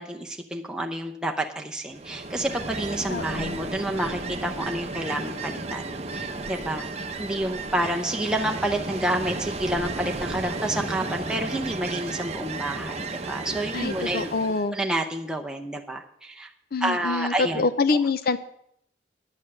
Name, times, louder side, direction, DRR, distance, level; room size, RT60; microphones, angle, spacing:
voice 1, 0.0-14.3 14.7-16.5 16.8-17.6, right 1 dB, 5° right, 1 dB, 0.7 m, -29 dB
Ocean, 1.9-14.7, right 3 dB, 35° right, 0.9 m, -33 dB
voice 2, 3.1-3.6 13.7-14.8 16.7-18.4, left 4 dB, 55° left, 12 dB, 0.6 m, -25 dB
9.8 x 9.1 x 6.6 m, 0.72 s
head